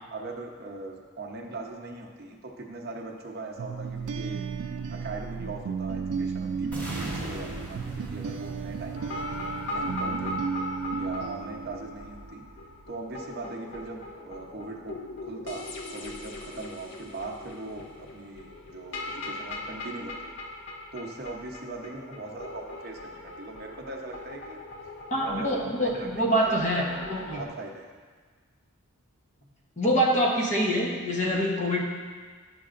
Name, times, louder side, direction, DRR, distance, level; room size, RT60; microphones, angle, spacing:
voice 1, 0.1-4.4 4.9-6.7 7.0-9.3 9.7-10.4 10.9-12.4 12.9-20.3 20.9-24.9 25.2-26.6 26.9-27.1 27.3-27.9, right 2 dB, 45° right, 1 dB, 0.8 m, -40 dB
sound 1, 3.6-12.3, right 5 dB, 90° right, 0.4 m, -34 dB
sound 2, 6.7-10.7, right 1 dB, 5° left, 1.0 m, -40 dB
sound 3, 9.0-27.4, left 2 dB, 55° left, 0.6 m, -40 dB
voice 2, 25.1-27.4 29.8-31.8, equal, 35° left, -2 dB, 0.9 m, -25 dB
10.0 x 6.7 x 2.5 m, 1.5 s
head